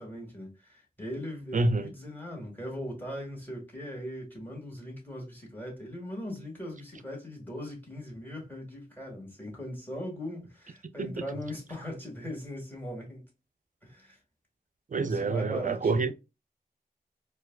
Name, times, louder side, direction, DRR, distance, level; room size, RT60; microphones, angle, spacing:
voice 1, 0.0-13.2 13.8-14.2 15.0-16.1, equal, 10° left, 1.7 m, -40 dB
voice 2, 1.5-1.9 11.0-11.1 14.9-16.1, right 3 dB, 55° right, 0.4 m, -27 dB
4.4 x 2.3 x 2.2 m
wide cardioid pair, 75°, 16 cm